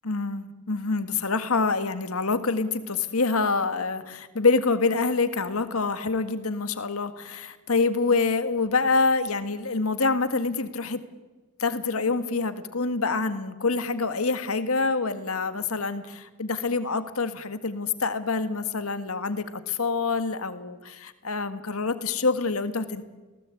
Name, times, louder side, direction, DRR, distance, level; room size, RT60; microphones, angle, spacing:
voice 1, 0.0-11.0 11.6-23.0, left 4 dB, 80° left, 10 dB, 1.8 m, -26 dB
28.5 x 18.0 x 8.5 m, 1.2 s
head